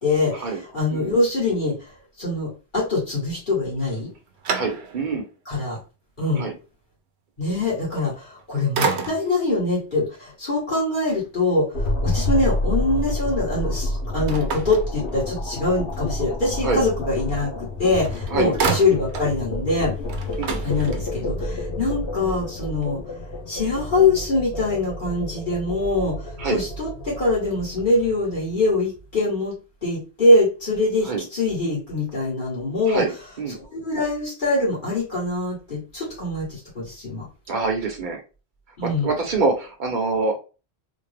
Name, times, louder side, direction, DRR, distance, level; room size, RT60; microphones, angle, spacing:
voice 1, 0.0-1.9 2.2-4.1 5.5-5.8 6.2-6.5 7.4-20.0 20.6-23.0 23.5-29.5 29.8-33.0 33.7-37.3 38.8-39.1, left 2 dB, 50° left, -7 dB, 1.8 m, -23 dB
sound 1, 3.8-5.2 5.8-5.9 8.1-8.4 8.7-9.5 14.3-15.5 17.6-17.7 18.0-19.4 19.7-19.8 20.0-21.3, right 5 dB, 85° right, 0.9 m, -29 dB
voice 2, 4.5-5.3 6.4-6.6 16.6-16.8 18.3-18.5 20.4-20.6 26.4-26.6 31.0-31.2 32.9-33.1 33.4-33.6 37.5-38.2 38.8-40.4, right 4 dB, 50° right, 3 dB, 0.9 m, -25 dB
sound 2, 11.7-29.0, left 1 dB, 80° left, 1.1 m, -29 dB
3.5 x 2.2 x 3.3 m, 0.32 s
omnidirectional pair, 1.1 m